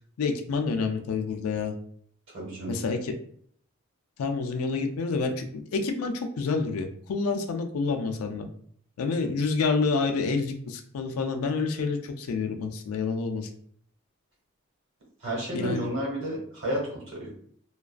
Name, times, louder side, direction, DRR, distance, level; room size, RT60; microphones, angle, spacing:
voice 1, 0.2-1.7 2.7-3.1 4.2-8.5 9.0-13.5 15.5-15.9, left 4 dB, 90° left, 5 dB, 0.4 m, -28 dB
voice 2, 2.3-2.8 15.2-17.3, right 1 dB, 60° right, -3 dB, 1.0 m, -31 dB
2.3 x 2.2 x 2.3 m, 0.62 s
head